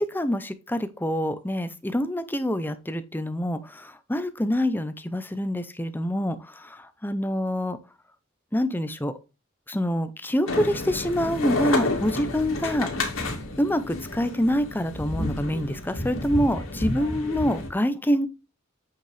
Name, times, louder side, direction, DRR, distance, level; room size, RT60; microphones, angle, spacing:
voice 1, 0.0-7.8 8.5-9.1 9.7-12.9 13.6-18.3, equal, 10° left, 0.6 m, -26 dB
sound 1, 10.5-17.7, left 2 dB, 80° left, 2.5 m, -30 dB
8.2 x 6.4 x 3.3 m
head